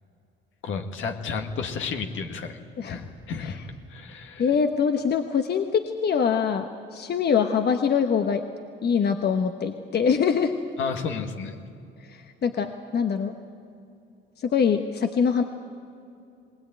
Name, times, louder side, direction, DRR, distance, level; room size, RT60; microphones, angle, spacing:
voice 1, 0.6-2.6 2.8-3.6 3.9-4.4 10.8-11.6, left 5 dB, 80° left, 4 dB, 2.0 m, -32 dB
voice 2, 4.4-8.4 8.8-10.5 12.1-13.3 14.4-15.4, left 6 dB, 55° left, 6 dB, 1.2 m, -24 dB
20.5 x 20.0 x 9.2 m, 2.6 s
cardioid pair, 90°, 20 cm